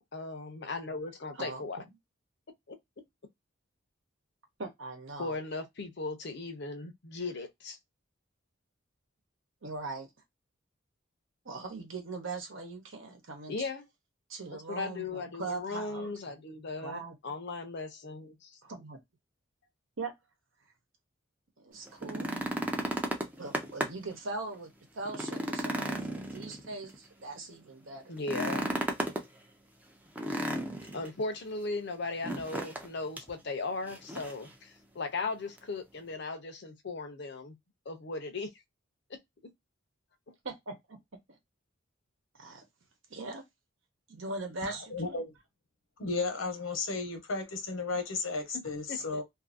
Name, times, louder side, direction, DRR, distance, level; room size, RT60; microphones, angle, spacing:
voice 1, 0.1-1.8 2.7-2.8 5.2-7.8 13.5-13.9 14.5-18.6 28.1-28.7 30.9-37.6 37.9-38.5 48.5-48.6 48.9-49.2, left 3 dB, 55° left, 0.7 m, -37 dB
voice 2, 1.3-1.9 4.6-5.4 9.6-10.1 11.4-13.7 14.3-16.4 16.8-17.1 18.6-19.0 20.0-20.1 21.6-22.3 23.4-28.1 40.4-41.0 41.3-41.4 42.4-42.6 43.1-43.4 44.1-45.2, right 3 dB, 70° right, 1.0 m, -41 dB
sound 1, 21.9-24.1 24.5-24.6 25.0-26.9 28.2-29.3 30.2-31.1 32.2-32.9 33.2-33.3 33.9-34.5 35.6-35.7, right 1 dB, 10° right, 0.5 m, -34 dB
voice 3, 44.6-45.3 46.0-49.2, left 3 dB, 80° left, 1.0 m, -34 dB
2.7 x 2.6 x 2.5 m
head